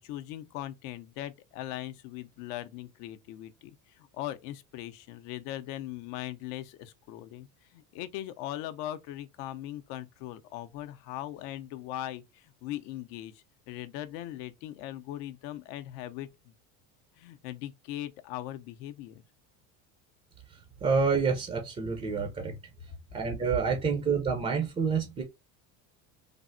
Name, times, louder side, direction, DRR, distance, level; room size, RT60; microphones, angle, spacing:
voice 1, 0.0-3.7 4.0-7.5 7.7-16.5 17.2-19.2, left 13 dB, 65° left, 0.5 m, -40 dB
voice 2, 20.8-22.6 23.1-25.2, right 5 dB, 20° right, 0.4 m, -28 dB
3.3 x 2.0 x 2.5 m
supercardioid pair, 125°, 36 cm